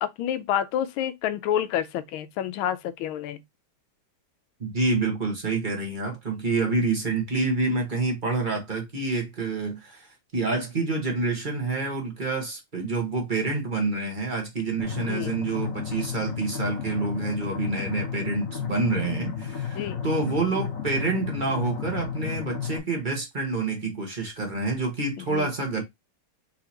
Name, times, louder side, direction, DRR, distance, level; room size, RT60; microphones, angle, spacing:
voice 1, 0.0-3.4 15.0-15.3 19.7-20.0 25.3-25.5, left 10 dB, 90° left, 1.4 m, -28 dB
voice 2, 4.6-10.1 10.3-25.8, right 3 dB, 30° right, 1.1 m, -27 dB
sound 1, 14.8-22.8, left 7 dB, 50° left, 1.3 m, -33 dB
4.2 x 3.8 x 2.8 m
omnidirectional pair, 2.2 m